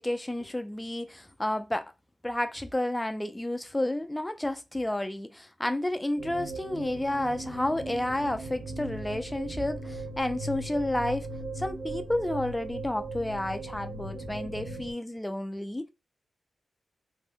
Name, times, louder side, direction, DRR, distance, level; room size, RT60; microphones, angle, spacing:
voice 1, 0.0-1.9 2.2-11.3 11.6-15.9, left 1 dB, 10° left, 0.4 m, -31 dB
sound 1, 6.2-14.9, right 2 dB, 85° right, 0.7 m, -38 dB
2.6 x 2.1 x 3.5 m
wide cardioid pair, 115°, 0 cm